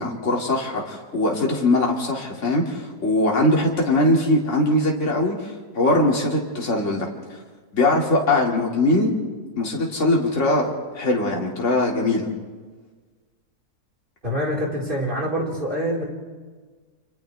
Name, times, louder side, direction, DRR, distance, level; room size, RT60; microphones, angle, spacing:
voice 1, 0.0-7.1 7.7-9.1 9.6-12.3, left 1 dB, 50° left, -1 dB, 2.8 m, -21 dB
voice 2, 14.2-16.0, equal, 30° right, -3 dB, 4.7 m, -25 dB
29.5 x 27.0 x 3.4 m, 1.4 s
omnidirectional pair, 1.7 m